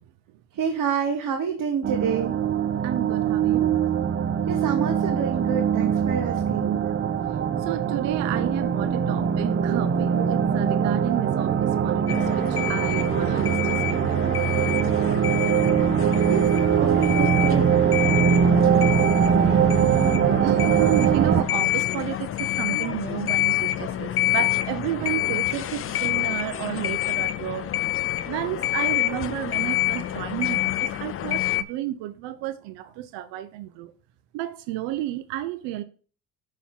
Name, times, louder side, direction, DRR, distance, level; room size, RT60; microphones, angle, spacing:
voice 1, 0.5-2.4 4.5-6.8 16.2-16.5 16.8-17.7, right 7 dB, 45° right, 1.0 m, -28 dB
sound 1, 1.8-21.4, right 7 dB, 25° right, 0.5 m, -22 dB
voice 2, 2.8-3.7 6.6-7.0 7.6-14.3 20.3-33.9 34.3-35.8, right 14 dB, 65° right, 0.7 m, -32 dB
sound 2, 12.1-31.6, left 15 dB, 30° left, 0.4 m, -28 dB
6.9 x 3.1 x 5.7 m
hypercardioid pair, 60°, 46 cm